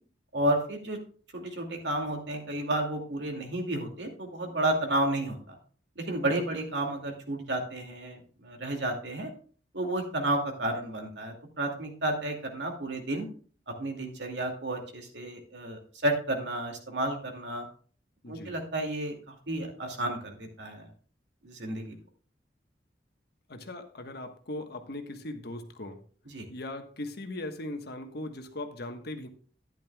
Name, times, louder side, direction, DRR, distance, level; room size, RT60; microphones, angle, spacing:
voice 1, 0.3-1.0 1.3-5.6 6.0-9.3 9.7-13.3 13.7-17.7 18.3-19.2 19.5-20.9 21.4-22.0 26.3-26.4, right 1 dB, 75° right, 3 dB, 2.4 m, -31 dB
voice 2, 18.2-18.5 23.5-26.0 26.5-29.3, left 1 dB, 65° left, 6 dB, 1.3 m, -39 dB
12.5 x 10.5 x 2.3 m, 0.42 s
head